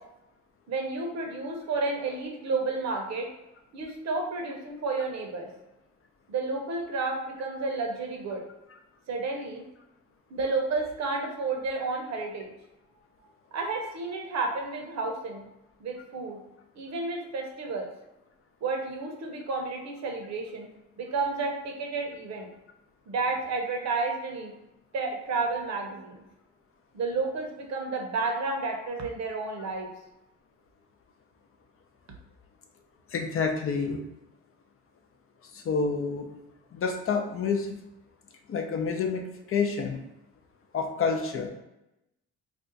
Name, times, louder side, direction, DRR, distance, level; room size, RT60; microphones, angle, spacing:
voice 1, 0.7-3.3 3.7-5.5 6.3-8.4 9.1-9.6 10.3-12.5 13.5-15.4 15.8-16.4 16.8-17.9 18.6-20.7 21.0-22.5 23.1-24.5 24.9-26.2 26.9-29.9, right 3 dB, 65° right, 2 dB, 0.8 m, -31 dB
voice 2, 33.1-34.0 35.5-36.3 36.7-37.8 38.5-40.0 40.7-41.5, left 5 dB, 45° left, 4 dB, 0.5 m, -28 dB
2.5 x 2.3 x 3.9 m, 0.91 s
cardioid pair, 90°, 30 cm